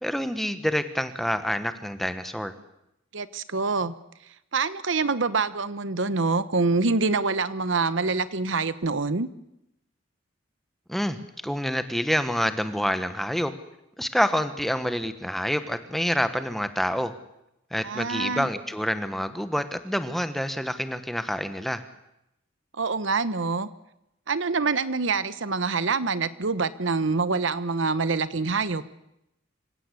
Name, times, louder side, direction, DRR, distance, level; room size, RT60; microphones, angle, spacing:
voice 1, 0.0-2.5 10.9-11.2 11.4-13.5 14.0-17.1 17.7-21.8, equal, ahead, 10 dB, 1.2 m, -27 dB
voice 2, 3.1-3.9 4.5-9.3 17.8-18.5 22.8-23.7 24.3-28.8, right 4 dB, 70° right, 15 dB, 1.0 m, -25 dB
26.0 x 16.0 x 8.4 m, 0.84 s
head